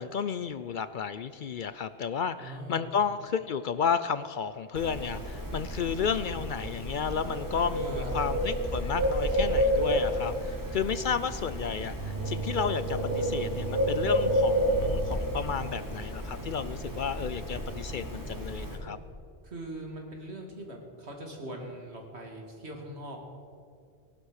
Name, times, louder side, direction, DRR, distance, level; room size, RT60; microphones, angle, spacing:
voice 1, 0.0-19.0, left 6 dB, 60° left, 13 dB, 0.6 m, -32 dB
voice 2, 2.4-2.9 7.8-8.1 19.4-23.2, right 1 dB, 75° right, 1 dB, 2.8 m, -41 dB
Bird, 4.7-18.7, equal, 15° right, 2.9 m, -30 dB
18.5 x 11.5 x 6.5 m, 2.3 s
omnidirectional pair, 1.1 m